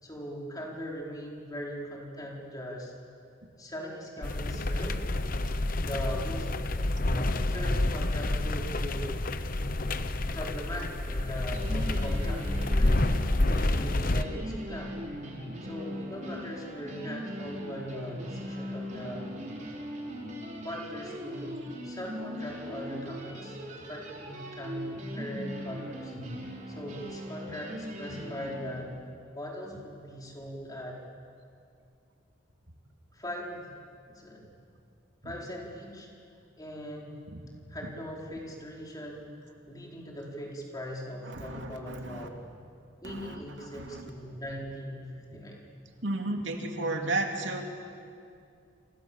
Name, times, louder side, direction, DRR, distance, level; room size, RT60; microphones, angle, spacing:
voice 1, 0.0-2.9 3.6-5.0 5.8-6.7 7.1-9.2 9.6-10.0 10.3-13.0 13.4-15.0 15.6-19.3 20.6-26.1 26.7-28.9 29.3-31.0 33.1-33.7 34.1-34.4 35.2-36.1 36.6-37.2 37.7-42.4 43.0-45.6, equal, 20° left, -2 dB, 5.0 m, -40 dB
sound 1, 4.2-14.2, left 1 dB, 45° left, 1.0 m, -28 dB
sound 2, 11.5-28.8, equal, 40° right, 4.8 m, -40 dB
voice 2, 41.3-42.3 43.0-43.4 43.7-44.0 46.0-47.6, right 2 dB, 70° right, 3 dB, 2.8 m, -33 dB
29.0 x 28.0 x 7.3 m, 2.4 s
head